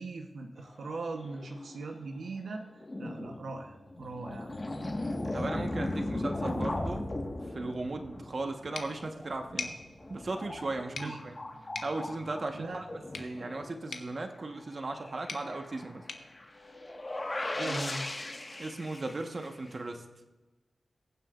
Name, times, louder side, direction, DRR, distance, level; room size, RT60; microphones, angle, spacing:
voice 1, 0.0-4.5 10.9-11.2 12.5-12.8 17.6-18.0, right 3 dB, 85° right, 3 dB, 1.0 m, -40 dB
sound 1, 0.6-2.0 2.5-2.6 2.7-14.1 14.6-14.7 14.9-19.7, left 1 dB, 30° left, 1.6 m, -38 dB
voice 2, 5.3-7.0 7.5-9.8 10.1-11.3 11.8-16.0 17.6-17.7 18.6-20.0, right 2 dB, 50° right, 4 dB, 1.3 m, -37 dB
sound 2, 8.7-17.4, left 4 dB, 70° left, 1.0 m, -46 dB
22.0 x 7.5 x 2.5 m, 1.2 s
cardioid pair, 70°, 0 cm